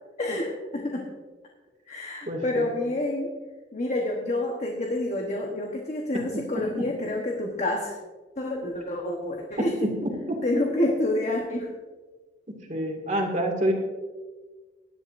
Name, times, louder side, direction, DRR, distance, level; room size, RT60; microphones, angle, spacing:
voice 1, 0.2-1.1 1.9-3.3 3.7-8.0 8.4-9.9 10.4-11.7, left 1 dB, 40° left, 0 dB, 1.2 m, -28 dB
voice 2, 2.3-2.7 6.3-6.9 9.6-10.0 10.3-10.4 12.5-13.7, right 1 dB, 45° right, 2 dB, 2.1 m, -28 dB
18.0 x 11.0 x 2.6 m, 1.3 s
head